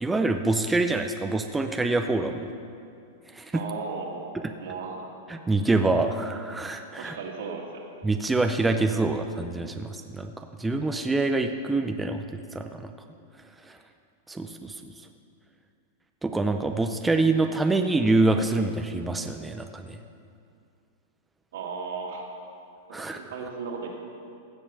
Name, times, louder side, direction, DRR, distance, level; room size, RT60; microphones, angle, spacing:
voice 1, 0.0-2.5 3.3-3.6 5.3-7.2 8.0-12.9 13.6-13.8 14.3-14.9 16.2-20.0 22.9-23.2, right 2 dB, 10° right, 5 dB, 0.5 m, -26 dB
voice 2, 3.5-5.1 7.0-7.9 21.5-22.3 22.9-23.9, right 4 dB, 75° right, 0 dB, 2.0 m, -36 dB
15.5 x 5.5 x 6.7 m, 2.4 s
hypercardioid pair, 135°, 0 cm